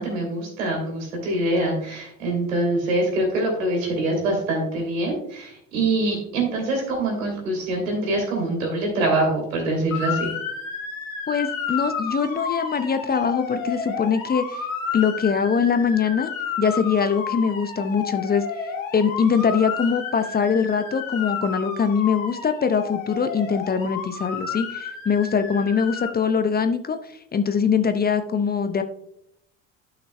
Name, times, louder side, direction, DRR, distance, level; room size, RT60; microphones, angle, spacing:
voice 1, 0.0-10.3, right 2 dB, 80° right, 1 dB, 2.9 m, -24 dB
Motor vehicle (road) / Siren, 9.9-26.1, left 6 dB, 80° left, 1.9 m, -31 dB
voice 2, 11.3-14.6 14.9-16.3 16.6-18.4 18.9-28.8, left 6 dB, 25° left, 9 dB, 0.6 m, -22 dB
11.5 x 5.7 x 2.2 m, 0.73 s
hypercardioid pair, 60°, 39 cm